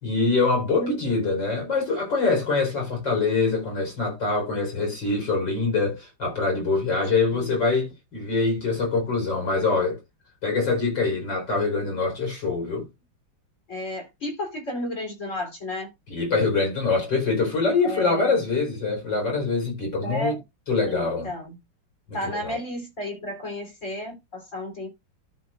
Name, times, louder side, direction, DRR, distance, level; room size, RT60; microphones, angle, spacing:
voice 1, 0.0-10.0 10.4-12.9 16.1-20.3 20.7-21.3 22.1-22.2 22.4-22.6, left 3 dB, 55° left, 5.0 m, -24 dB
voice 2, 13.7-15.9 17.8-18.4 20.0-20.4 20.8-21.6 22.1-24.9, left 1 dB, 35° left, 4.0 m, -32 dB
13.0 x 5.6 x 2.5 m
omnidirectional pair, 2.3 m